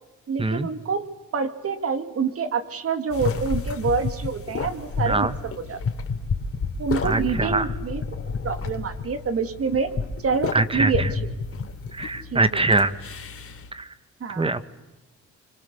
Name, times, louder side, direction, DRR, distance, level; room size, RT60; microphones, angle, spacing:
voice 1, 0.3-1.1 1.3-5.3 5.7-5.8 6.8-8.0 8.4-9.9 10.2-11.2 12.3-12.9 14.2-14.5, right 5 dB, 50° right, 9 dB, 2.6 m, -27 dB
sound 1, 3.1-13.7, left 4 dB, 50° left, 3.0 m, -31 dB
voice 2, 7.0-7.7 10.5-11.1 11.9-12.9 13.7-13.9 14.3-14.6, right 2 dB, 20° right, 13 dB, 1.6 m, -23 dB
28.5 x 25.5 x 7.1 m, 1.1 s
cardioid pair, 90°, 30 cm